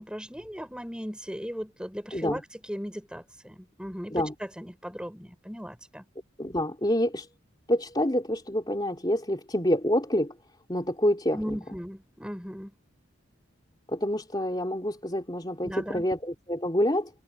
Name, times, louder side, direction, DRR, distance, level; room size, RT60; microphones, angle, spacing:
voice 1, 0.0-6.0 11.3-12.7 15.6-16.1, equal, 5° right, 6.5 m, -37 dB
voice 2, 6.4-7.3 7.7-10.3 10.7-11.5 13.9-17.1, equal, 20° left, 3.2 m, -27 dB
head